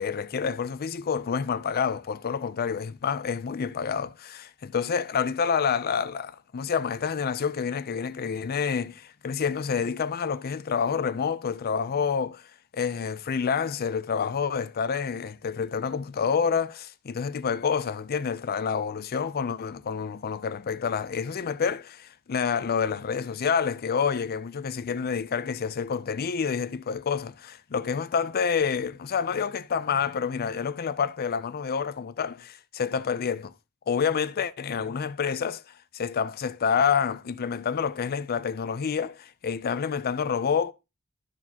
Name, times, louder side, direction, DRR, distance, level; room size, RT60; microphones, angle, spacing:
voice 1, 0.0-12.4 12.7-33.5 33.9-35.6 35.9-40.7, left 6 dB, 45° left, 0.4 m, -28 dB
12.5 x 4.8 x 2.8 m
head